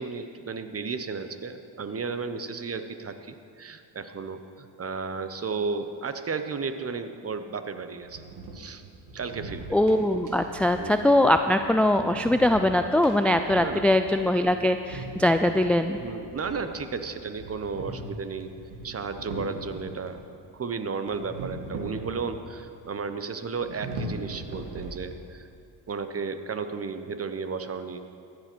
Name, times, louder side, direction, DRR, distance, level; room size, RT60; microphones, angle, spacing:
voice 1, 0.0-8.2 8.5-8.8 9.1-9.8 10.8-11.2 13.6-13.9 15.9-18.5 18.8-20.2 20.5-25.5 25.9-28.0, right 5 dB, 35° right, 9 dB, 1.0 m, -34 dB
sound 1, 8.0-20.2 21.0-22.6 22.9-23.0 23.5-25.4, right 2 dB, 70° right, 2.1 m, -41 dB
voice 2, 9.7-16.0, left 1 dB, 5° left, 8 dB, 0.4 m, -22 dB
14.5 x 7.8 x 6.2 m, 2.5 s
supercardioid pair, 65°, 44 cm